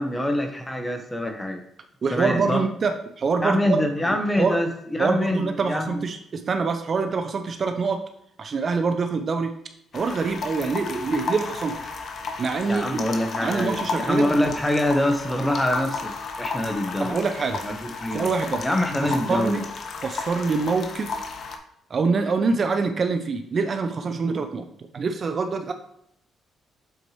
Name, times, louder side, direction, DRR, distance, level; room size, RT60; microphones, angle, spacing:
voice 1, 0.0-1.6 2.1-2.6 3.4-6.0 12.7-16.1 16.4-17.2 17.6-18.3 18.6-19.6, left 1 dB, 10° left, 5 dB, 1.1 m, -25 dB
voice 2, 2.0-3.8 4.1-4.6 5.0-8.0 8.4-9.5 9.9-11.8 12.4-13.0 13.4-14.3 17.0-17.6 18.1-18.6 19.0-19.7 20.0-21.1 21.9-24.7 24.9-25.7, right 4 dB, 45° right, 7 dB, 0.7 m, -25 dB
sound 1, 9.9-21.6, left 4 dB, 55° left, 0.9 m, -33 dB
7.8 x 4.5 x 3.2 m, 0.74 s
cardioid pair, 90°, 0 cm